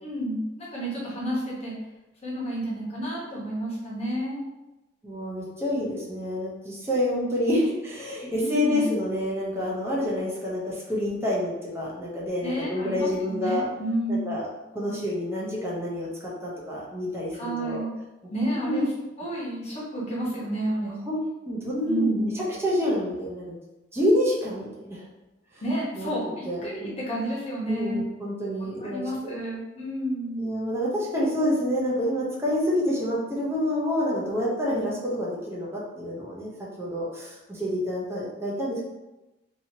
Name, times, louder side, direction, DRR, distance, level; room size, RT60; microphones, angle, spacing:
voice 1, 0.0-1.7 2.2-4.4 8.4-8.9 12.4-14.4 17.3-17.9 18.3-18.8 19.2-21.0 21.8-22.3 25.6-28.0 28.8-30.4, right 1 dB, 35° left, -6 dB, 1.0 m, -30 dB
voice 2, 5.0-13.7 14.1-14.4 14.7-16.1 16.4-17.8 18.6-18.9 20.8-21.2 21.5-23.6 23.9-25.0 25.9-26.1 26.5-26.9 27.7-29.3 30.4-38.8, left 1 dB, 15° right, -6 dB, 0.6 m, -28 dB
2.9 x 2.7 x 2.7 m, 1.0 s
head